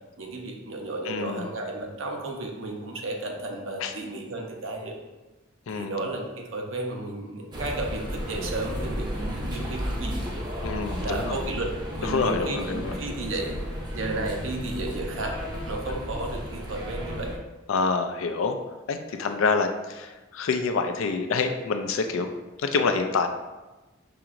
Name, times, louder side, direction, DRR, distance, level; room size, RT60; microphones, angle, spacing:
voice 1, 0.2-5.0 5.7-10.2 11.0-13.6 13.9-15.4 15.7-17.3 19.2-19.3, right 2 dB, 70° right, 2 dB, 0.7 m, -33 dB
voice 2, 1.0-1.5 3.8-3.9 5.7-6.0 10.6-11.4 12.0-13.0 17.7-18.6 18.9-22.3 22.6-23.3, left 4 dB, 80° left, 7 dB, 0.4 m, -27 dB
sound 1, 7.5-17.4, equal, 20° right, 0.6 m, -33 dB
5.8 x 2.9 x 2.5 m, 1.1 s
head